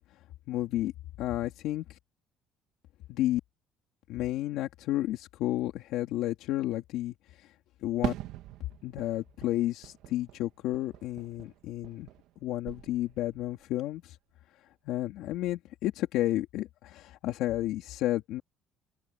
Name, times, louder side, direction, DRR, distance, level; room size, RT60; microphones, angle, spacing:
voice 1, 0.5-0.9 1.2-2.0 3.1-3.4 4.1-7.5 7.8-8.1 8.8-12.1 12.4-14.2 14.8-18.4, left 14 dB, 75° left, 3.3 m, -31 dB
Fireworks, 8.0-12.4 12.6-13.4, right 14 dB, 75° right, 1.9 m, -41 dB
open air
cardioid pair, 150°, 0 cm